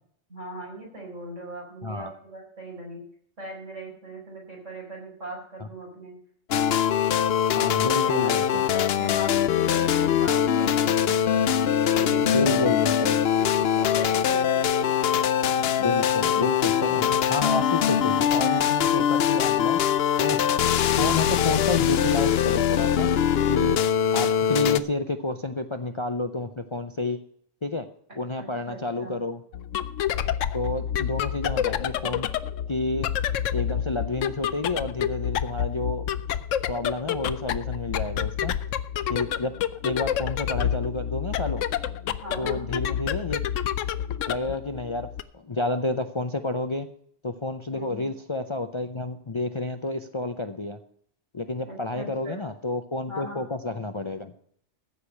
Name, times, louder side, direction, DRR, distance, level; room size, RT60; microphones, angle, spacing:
voice 1, 0.3-3.0 3.4-6.1 8.0-8.4 8.7-11.2 11.9-12.6 13.0-14.9 28.3-29.2 42.2-42.6 47.7-48.1 51.7-52.5 53.1-53.5, right 2 dB, 80° right, -1 dB, 5.1 m, -39 dB
voice 2, 1.8-2.1 7.6-8.7 12.2-13.1 15.6-19.8 20.2-20.4 21.0-23.1 23.5-23.8 24.1-27.2 27.6-27.9 28.2-29.4 30.5-32.3 32.7-33.1 33.5-36.4 36.7-38.5 39.1-39.5 39.8-41.7 42.4-43.4 44.3-45.1 45.3-46.9 47.2-50.8 51.3-54.3, left 2 dB, 30° left, 8 dB, 0.5 m, -30 dB
sound 1, 6.5-24.8, left 9 dB, 60° left, 0.8 m, -22 dB
sound 2, 29.5-45.2, left 9 dB, 85° left, 1.0 m, -29 dB
14.5 x 5.0 x 8.3 m, 0.64 s
omnidirectional pair, 1.3 m